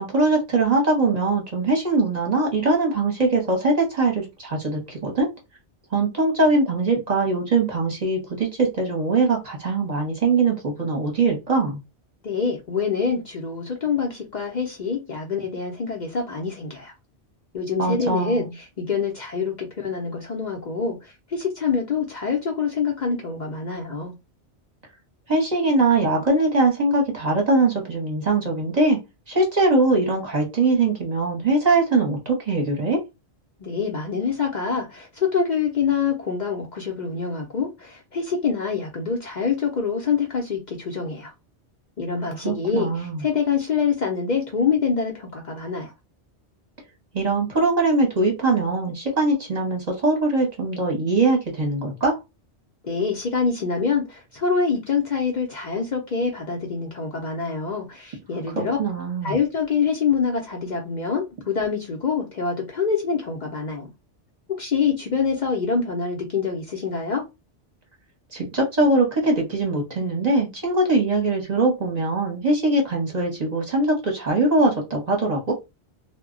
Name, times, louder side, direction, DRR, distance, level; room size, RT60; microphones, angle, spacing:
voice 1, 0.0-5.3 5.9-11.8 17.8-18.5 25.3-29.0 29.3-33.0 42.4-43.2 47.1-52.2 58.5-59.4 68.3-75.5, right 3 dB, 40° right, 0.9 m, -22 dB
voice 2, 12.2-16.9 17.5-24.1 33.6-41.3 42.0-45.9 52.8-58.8 59.2-63.9 64.6-67.2, left 5 dB, 50° left, 0.6 m, -25 dB
2.2 x 2.1 x 3.6 m
omnidirectional pair, 1.1 m